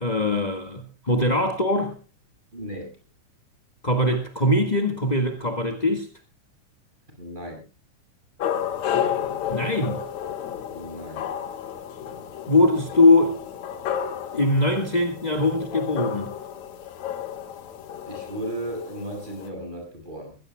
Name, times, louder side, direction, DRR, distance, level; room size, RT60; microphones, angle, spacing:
voice 1, 0.0-1.9 3.8-6.1 9.5-10.0 12.5-13.4 14.3-16.4, left 2 dB, 30° left, 0.7 m, -21 dB
voice 2, 2.5-2.9 7.2-7.7 10.7-11.3 18.1-20.4, right 1 dB, 15° right, 7.1 m, -35 dB
sound 1, 8.4-19.5, left 9 dB, 65° left, 2.6 m, -32 dB
22.5 x 16.5 x 2.2 m
omnidirectional pair, 3.7 m